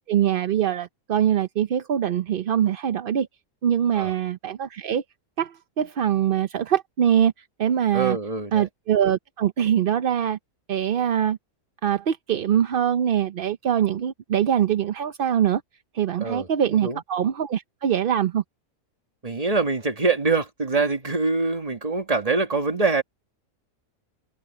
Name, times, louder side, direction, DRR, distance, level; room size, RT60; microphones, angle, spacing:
voice 1, 0.1-3.3 3.6-5.0 5.4-7.3 7.6-8.2 8.5-10.4 10.7-11.4 11.8-15.6 15.9-18.4, right 9 dB, 55° right, 0.6 m, -23 dB
voice 2, 7.9-8.7 16.2-17.0 19.2-23.0, right 4 dB, 25° right, 1.8 m, -24 dB
omnidirectional pair, 1.5 m